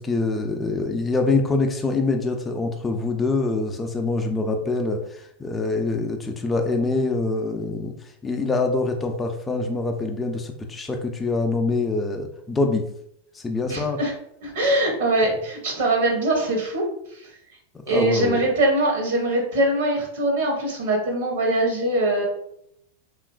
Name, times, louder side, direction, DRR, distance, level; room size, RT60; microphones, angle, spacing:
voice 1, 0.0-12.9 13.3-14.0 17.7-18.4, left 3 dB, 15° left, 3 dB, 0.4 m, -25 dB
voice 2, 13.7-14.1 14.4-16.9 17.2-17.3 17.9-22.2, right 1 dB, 75° right, 0 dB, 0.8 m, -22 dB
2.9 x 2.4 x 2.3 m, 0.72 s
hypercardioid pair, 100°, 0 cm